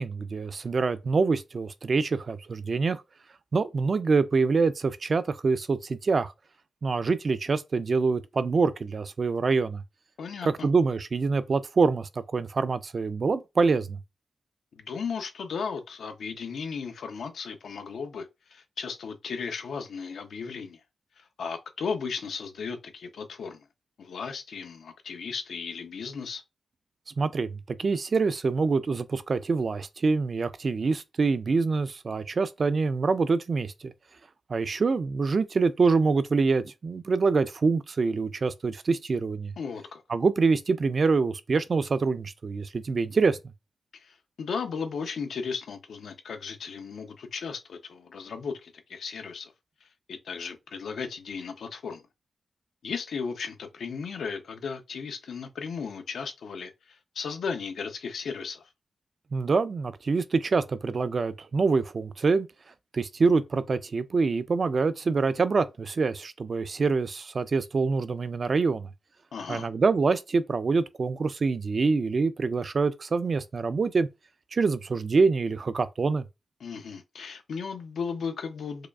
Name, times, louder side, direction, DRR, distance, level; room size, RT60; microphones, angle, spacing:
voice 1, 0.0-3.0 3.5-6.3 6.8-9.8 10.5-14.0 27.2-33.9 34.5-39.5 40.1-43.4 59.3-62.5 62.9-68.9 69.5-74.1 74.5-76.2, right 4 dB, 45° right, 0.3 m, -25 dB
voice 2, 10.2-10.7 14.7-20.8 21.2-23.6 24.0-26.4 39.6-40.0 43.9-49.5 49.8-52.1 52.8-58.7 69.3-69.7 76.6-78.9, left 5 dB, 85° left, 0.6 m, -35 dB
4.7 x 2.3 x 2.3 m
wide cardioid pair, 125°, 0 cm